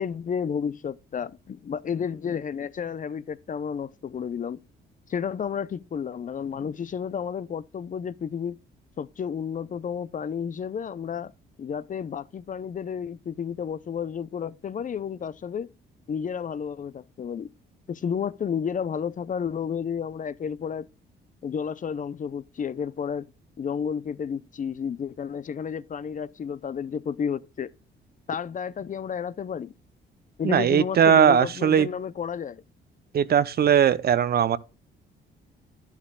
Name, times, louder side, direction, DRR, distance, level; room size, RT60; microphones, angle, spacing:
voice 1, 0.0-4.6 5.1-8.6 9.0-11.3 11.6-15.7 16.1-17.5 17.9-20.9 21.4-23.3 23.6-27.7 28.3-29.7 30.4-32.6, left 7 dB, 40° left, 0.6 m, -31 dB
voice 2, 30.4-31.9 33.1-34.6, right 8 dB, 50° right, 0.7 m, -19 dB
11.5 x 11.0 x 2.3 m
cardioid pair, 90°, 20 cm